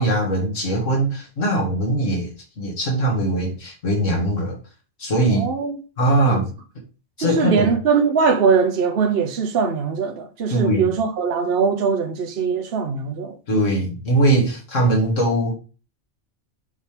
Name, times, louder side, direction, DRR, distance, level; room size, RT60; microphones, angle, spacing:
voice 1, 0.0-2.3 2.6-4.6 5.0-5.5 6.0-6.5 7.2-7.7 10.5-10.9 13.5-15.5, right 1 dB, 85° left, 2.3 m, -21 dB
voice 2, 5.3-5.7 6.2-6.4 7.2-13.3, right 5 dB, 55° right, 1.0 m, -21 dB
6.6 x 4.3 x 3.3 m
omnidirectional pair, 1.3 m